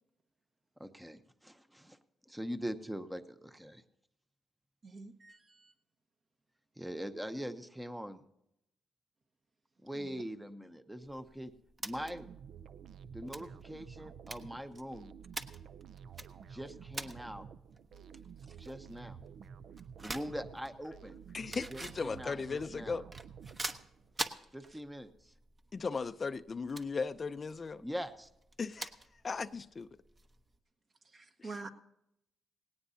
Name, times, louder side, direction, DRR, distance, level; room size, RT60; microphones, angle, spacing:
voice 1, 0.8-2.0 2.3-3.8 6.8-8.2 9.8-11.5 11.8-12.3 13.1-15.2 16.5-17.5 18.6-19.2 20.0-21.2 21.7-22.3 22.7-23.0 24.5-25.3 27.8-28.3, equal, 5° right, 9 dB, 0.8 m, -42 dB
voice 2, 4.8-5.7 9.9-10.2 18.4-18.6 24.6-24.8 31.1-31.7, right 3 dB, 40° right, 6 dB, 1.4 m, -48 dB
sound 1, 11.0-30.6, right 2 dB, 25° right, 1.0 m, -48 dB
sound 2, 11.9-24.1, right 7 dB, 65° right, 0.5 m, -51 dB
voice 3, 21.3-23.0 25.7-27.8 28.6-30.0 31.4-31.5, left 4 dB, 35° left, 11 dB, 0.5 m, -37 dB
18.0 x 18.0 x 2.8 m, 0.82 s
cardioid pair, 90°, 0 cm